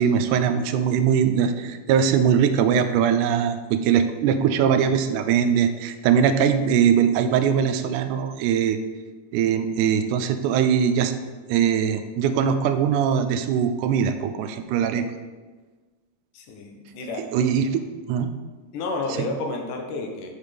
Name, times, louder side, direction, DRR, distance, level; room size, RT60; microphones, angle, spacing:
voice 1, 0.0-8.8 9.3-11.2 11.5-15.1 17.3-17.8 18.1-18.3 19.2-19.3, right 8 dB, 85° right, 9 dB, 2.0 m, -21 dB
voice 2, 16.3-17.3 18.7-20.3, left 2 dB, 90° left, 2 dB, 2.6 m, -30 dB
6.4 x 5.8 x 5.1 m, 1.3 s
omnidirectional pair, 3.6 m